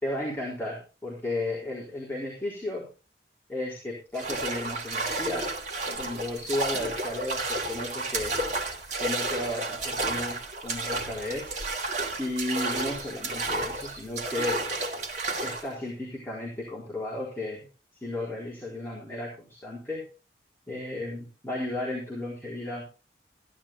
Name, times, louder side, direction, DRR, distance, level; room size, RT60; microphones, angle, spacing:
voice 1, 0.0-2.9 3.5-5.5 6.0-8.4 9.0-11.5 12.2-14.6 15.4-17.7 18.0-20.0 20.7-22.9, left 1 dB, 10° left, -5 dB, 4.0 m, -34 dB
sound 1, 4.1-15.7, right 2 dB, 40° right, 2.4 m, -32 dB
15.0 x 12.0 x 3.0 m, 0.33 s
head